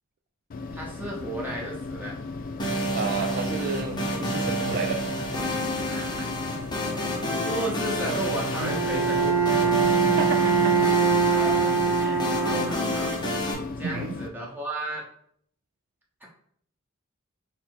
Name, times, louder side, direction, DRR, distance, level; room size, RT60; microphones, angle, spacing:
sound 1, 0.5-14.3, left 3 dB, 45° left, 0.3 m, -36 dB
voice 1, 0.7-2.2 5.8-6.3 6.7-9.7 10.7-10.8 11.2-11.8 12.3-13.2 13.8-15.1, right 1 dB, 10° right, -3 dB, 1.0 m, -35 dB
sound 2, 2.6-13.5, equal, 20° left, 0.7 m, -29 dB
voice 2, 2.9-5.0 10.1-10.7 12.0-12.2 12.5-13.0 13.8-14.1, right 5 dB, 50° right, 4 dB, 0.3 m, -32 dB
Bowed string instrument, 8.6-13.1, right 5 dB, 75° right, 0.9 m, -23 dB
4.0 x 2.0 x 4.5 m, 0.65 s
head